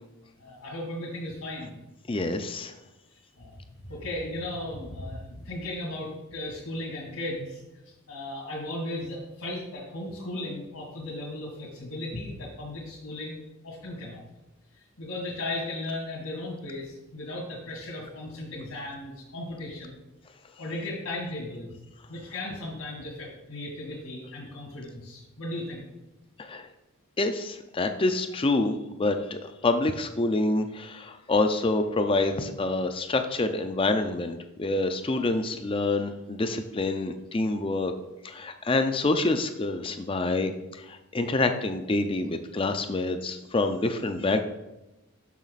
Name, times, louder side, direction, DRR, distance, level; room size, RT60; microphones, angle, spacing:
voice 1, 0.4-1.7 3.4-3.6 3.8-14.2 14.7-20.0 20.6-21.7 22.1-25.8, left 1 dB, 75° left, -7 dB, 2.2 m, -36 dB
voice 2, 2.1-2.7 26.4-26.7 27.2-37.9 38.2-40.5 40.9-44.4, left 2 dB, 25° left, 7 dB, 0.4 m, -27 dB
7.3 x 6.2 x 4.0 m, 0.96 s
head